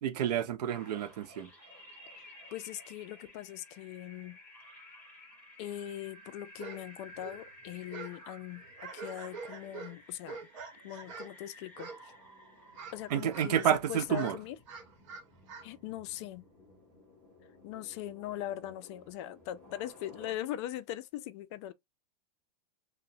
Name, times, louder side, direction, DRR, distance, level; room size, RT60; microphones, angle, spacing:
voice 1, 0.0-1.5 13.1-14.4, right 10 dB, 80° right, 0.6 m, -29 dB
sound 1, 0.7-20.3, left 1 dB, 10° left, 1.7 m, -55 dB
voice 2, 2.1-4.4 5.6-10.4 10.8-12.2 12.9-14.6 15.6-16.4 17.6-21.7, left 13 dB, 45° left, 0.4 m, -41 dB
sound 2, 6.6-6.8 7.1-8.2 8.6-11.4 11.8-12.3 12.5-13.7 14.0-15.7, right 5 dB, 50° right, 1.0 m, -46 dB
2.8 x 2.1 x 2.7 m
supercardioid pair, 140°, 20 cm